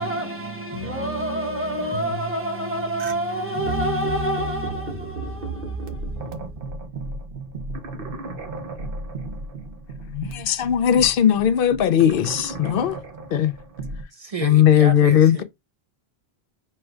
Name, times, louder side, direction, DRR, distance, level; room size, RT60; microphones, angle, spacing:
voice 1, 0.0-6.5, right 1 dB, 15° right, 1.0 m, -27 dB
sound 1, 3.0-3.1 3.7-14.0, right 3 dB, 60° right, 1.0 m, -34 dB
voice 2, 10.1-13.0 13.3-13.5 14.4-15.4, left 9 dB, 65° left, 0.7 m, -18 dB
voice 3, 14.1-15.4, right 3 dB, 45° right, 0.6 m, -31 dB
4.4 x 2.2 x 4.6 m
omnidirectional pair, 1.1 m